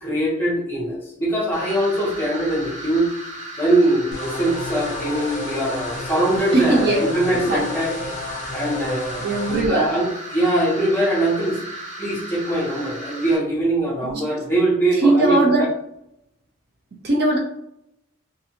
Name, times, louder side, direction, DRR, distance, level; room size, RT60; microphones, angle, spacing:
voice 1, 0.0-3.1 3.6-8.0 8.5-9.3 9.7-11.6 12.0-15.7, right 1 dB, 10° left, -6 dB, 1.0 m, -22 dB
sound 1, 1.5-13.4, right 1 dB, 35° right, 0.8 m, -36 dB
sound 2, 4.1-9.6, left 1 dB, 35° left, 0.6 m, -32 dB
voice 2, 6.5-7.0 7.3-7.6 9.2-9.9 14.0-14.2 15.0-15.7 17.0-17.4, right 2 dB, 50° right, 0 dB, 0.5 m, -19 dB
2.5 x 2.5 x 2.8 m, 0.78 s
head